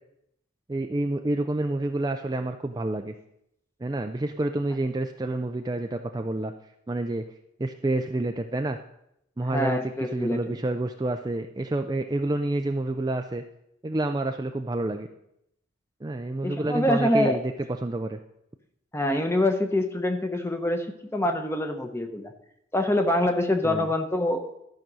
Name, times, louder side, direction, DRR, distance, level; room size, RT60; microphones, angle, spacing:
voice 1, 0.7-3.1 3.8-6.5 6.9-7.2 7.6-8.8 9.4-13.4 13.8-15.1 16.0-17.5 17.8-18.2 23.6-23.9, right 2 dB, 20° right, 5 dB, 0.4 m, -28 dB
voice 2, 9.5-10.6 16.4-17.4 18.9-20.9 21.1-22.3 22.7-24.5, left 1 dB, 15° left, 6 dB, 0.8 m, -25 dB
12.5 x 5.2 x 6.1 m, 0.78 s
head